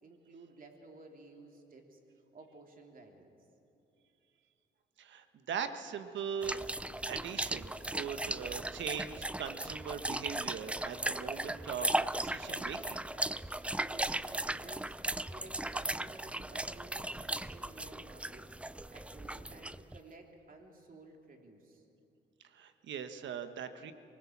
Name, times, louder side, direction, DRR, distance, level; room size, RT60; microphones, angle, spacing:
voice 1, 0.0-2.0 2.3-3.3 13.8-15.0 15.3-21.9, right 3 dB, 45° right, 2 dB, 3.3 m, -54 dB
voice 2, 5.0-6.6 7.1-13.0 22.5-23.9, right 7 dB, 70° right, 9 dB, 1.3 m, -40 dB
sound 1, 6.4-20.0, right 1 dB, 5° right, 0.4 m, -37 dB
24.0 x 19.5 x 7.3 m, 2.8 s
cardioid pair, 90°, 20 cm